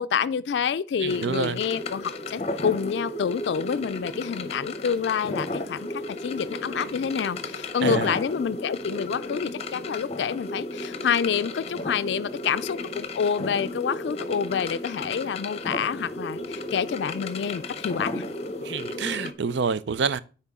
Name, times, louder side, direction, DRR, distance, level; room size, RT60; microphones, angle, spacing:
voice 1, 0.0-5.8 6.1-18.2, left 7 dB, 80° left, 0.3 m, -28 dB
voice 2, 1.0-1.6 7.8-8.1 18.6-20.2, right 5 dB, 80° right, 0.5 m, -27 dB
sound 1, 1.1-19.3, left 2 dB, 35° left, 0.7 m, -34 dB
9.8 x 4.3 x 3.6 m
head